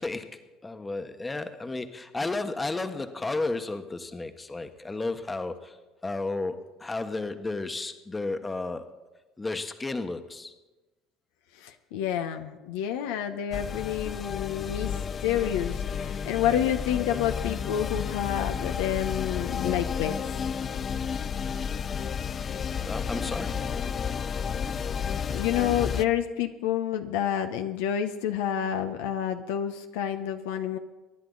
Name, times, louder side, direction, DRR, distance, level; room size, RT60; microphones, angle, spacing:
voice 1, 0.0-5.8 6.0-8.9 9.4-10.5 22.7-23.9, left 3 dB, 20° left, 8 dB, 1.3 m, -33 dB
voice 2, 11.6-20.2 25.3-30.8, left 10 dB, 80° left, 7 dB, 0.9 m, -29 dB
sound 1, 13.5-26.0, left 7 dB, 40° left, 0.6 m, -31 dB
24.0 x 10.5 x 4.0 m, 1.1 s
hypercardioid pair, 75°, 0 cm